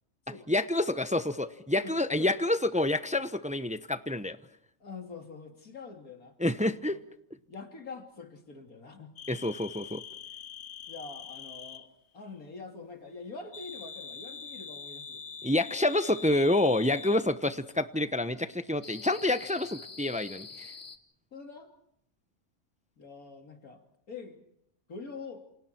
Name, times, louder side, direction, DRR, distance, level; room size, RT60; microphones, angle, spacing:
voice 1, 0.5-4.4 6.4-7.0 9.3-10.0 15.4-20.7, left 1 dB, 5° right, 11 dB, 0.7 m, -28 dB
voice 2, 1.8-2.3 4.8-6.4 6.6-7.0 7.5-9.1 10.9-15.2 21.3-21.7 23.0-24.4 24.9-25.4, left 4 dB, 80° left, 4 dB, 3.3 m, -45 dB
sound 1, 9.2-11.9 13.5-17.3 18.8-21.0, left 6 dB, 50° left, 1.5 m, -44 dB
29.0 x 28.0 x 4.5 m, 0.72 s
omnidirectional pair, 1.5 m